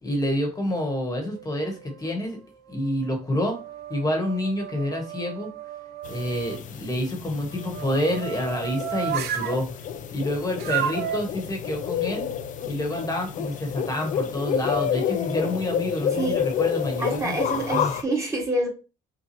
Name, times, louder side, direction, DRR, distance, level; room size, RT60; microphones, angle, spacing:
voice 1, 0.0-2.4 2.7-3.6 3.9-5.5 6.1-9.7 10.1-12.3 12.7-17.3 17.7-17.9, left 1 dB, 20° left, 2 dB, 1.2 m, -28 dB
sound 1, 1.2-2.1 2.7-6.6 7.4-9.6 10.6-11.2, right 10 dB, 70° right, 0.6 m, -33 dB
sound 2, 6.0-18.0, left 8 dB, 50° left, 0.5 m, -30 dB
voice 2, 17.0-18.7, right 2 dB, 15° right, -1 dB, 1.4 m, -27 dB
5.7 x 2.3 x 3.0 m, 0.31 s
cardioid pair, 110°, 17 cm